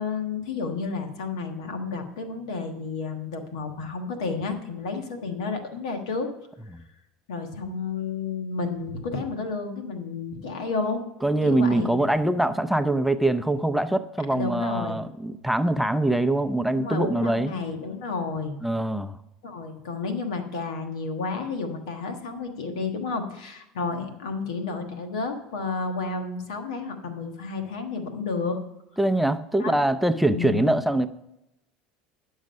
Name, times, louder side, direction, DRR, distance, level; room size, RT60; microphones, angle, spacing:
voice 1, 0.0-6.3 7.3-11.0 11.4-11.9 14.3-15.0 16.7-18.6 19.4-28.6 29.6-29.7 30.3-30.7, left 4 dB, 85° left, 6 dB, 1.4 m, -31 dB
voice 2, 11.2-17.5 18.6-19.2 29.0-31.1, right 1 dB, ahead, 10 dB, 0.5 m, -23 dB
10.5 x 6.4 x 5.3 m, 0.87 s
supercardioid pair, 95°, 3 cm